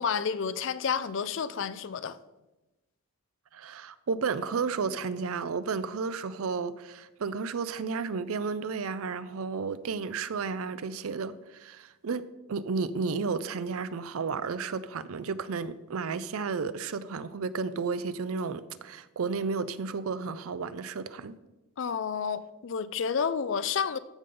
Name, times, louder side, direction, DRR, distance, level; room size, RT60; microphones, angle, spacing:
voice 1, 0.0-2.2 21.8-24.0, left 6 dB, 55° left, 0.4 m, -30 dB
voice 2, 3.5-12.2 12.5-21.3, right 5 dB, 75° right, 0.5 m, -32 dB
14.5 x 5.2 x 3.8 m
head